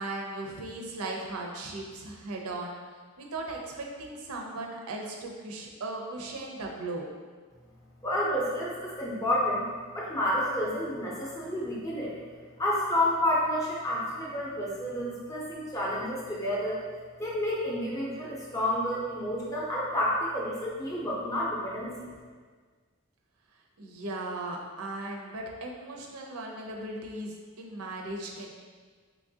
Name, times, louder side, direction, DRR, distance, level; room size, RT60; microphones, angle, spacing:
voice 1, 0.0-2.8 3.2-7.1 23.8-28.5, right 2 dB, 85° right, 0 dB, 0.5 m, -37 dB
voice 2, 8.0-12.1 12.6-16.8 17.2-22.1, left 1 dB, 15° left, -5 dB, 0.5 m, -30 dB
3.5 x 2.9 x 2.7 m, 1.5 s
head